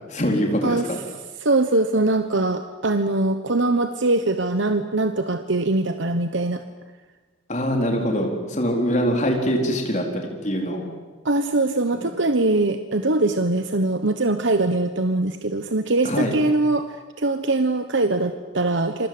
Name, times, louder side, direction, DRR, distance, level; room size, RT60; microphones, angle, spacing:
voice 1, 0.1-1.0 7.5-10.9 11.9-12.1 16.0-16.3, equal, 35° left, 2 dB, 4.2 m, -23 dB
voice 2, 1.4-6.6 11.2-19.1, right 2 dB, 65° right, 8 dB, 1.2 m, -22 dB
28.5 x 23.5 x 8.0 m, 1.3 s
head